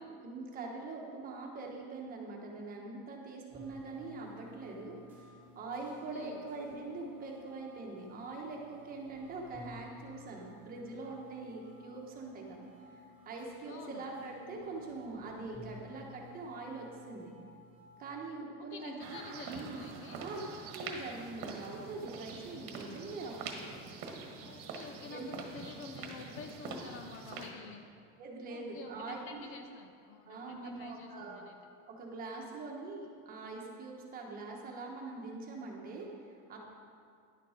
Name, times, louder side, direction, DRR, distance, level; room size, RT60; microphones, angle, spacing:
voice 1, 0.0-5.0 5.5-17.3 18.0-19.2 19.4-19.8 20.1-20.4 20.7-23.8 25.1-25.3 28.2-29.5 30.3-31.4 31.9-36.6, right 3 dB, 25° right, -1 dB, 1.2 m, -43 dB
sound 1, 3.5-18.1, left 2 dB, 5° right, 2.0 m, -55 dB
voice 2, 5.8-6.4 13.7-14.1 18.7-20.2 24.4-27.9 28.5-31.6, left 5 dB, 40° left, 5 dB, 0.5 m, -49 dB
sound 2, 19.0-27.5, right 4 dB, 45° right, 1.3 m, -45 dB
11.0 x 6.8 x 5.0 m, 2.3 s
cardioid pair, 170°, 33 cm